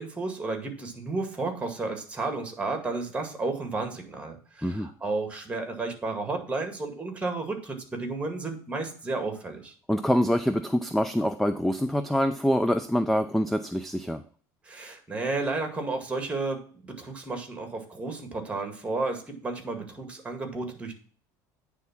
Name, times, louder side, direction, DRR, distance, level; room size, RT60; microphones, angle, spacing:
voice 1, 0.0-9.7 14.6-21.0, right 3 dB, 15° right, 5 dB, 2.0 m, -32 dB
voice 2, 9.9-14.2, equal, 5° left, 11 dB, 0.5 m, -25 dB
9.2 x 3.6 x 5.8 m, 0.42 s
supercardioid pair, 105°, 9 cm